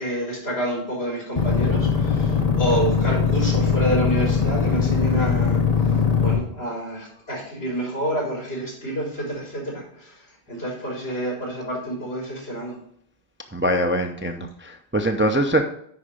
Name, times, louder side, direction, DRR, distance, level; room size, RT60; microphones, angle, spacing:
voice 1, 0.0-5.9 6.2-12.8, right 1 dB, 65° left, -3 dB, 4.6 m, -28 dB
sound 1, 1.4-6.4, left 6 dB, 40° left, 1.0 m, -21 dB
voice 2, 13.5-15.6, right 1 dB, 15° right, 5 dB, 0.6 m, -23 dB
9.9 x 4.9 x 5.0 m, 0.66 s
omnidirectional pair, 1.1 m